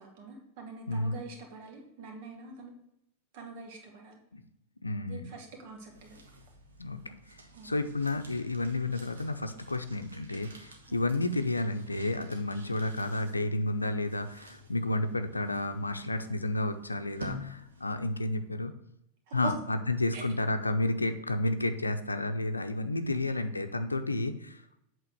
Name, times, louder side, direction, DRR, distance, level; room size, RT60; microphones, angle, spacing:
voice 1, 0.0-2.7 3.3-4.2 5.1-6.2 7.5-7.7 10.9-11.1 19.3-19.5 20.1-20.2 23.1-23.3, right 4 dB, 50° right, 2 dB, 2.1 m, -45 dB
voice 2, 4.8-5.2 6.8-7.0 7.6-18.7 19.3-24.6, left 2 dB, 80° left, 8 dB, 0.6 m, -31 dB
sound 1, 5.6-18.1, equal, 70° right, 1.4 m, -51 dB
8.3 x 3.7 x 6.4 m, 0.79 s
figure-of-eight pair, 90°, 0 cm